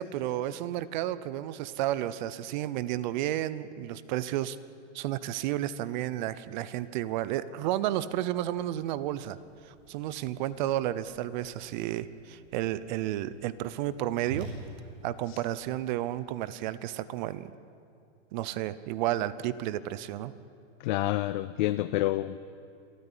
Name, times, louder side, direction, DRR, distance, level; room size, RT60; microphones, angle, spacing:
voice 1, 0.0-4.6 4.9-9.4 9.6-14.5 15.0-17.5 18.3-20.3, right 13 dB, 40° right, 17 dB, 0.7 m, -32 dB
Whoosh swoosh swish, 8.4-16.1, right 3 dB, 60° right, 6.3 m, -49 dB
voice 2, 20.8-22.4, left 16 dB, 40° left, 14 dB, 0.5 m, -28 dB
28.0 x 9.6 x 10.0 m, 2.5 s
hypercardioid pair, 140°, 36 cm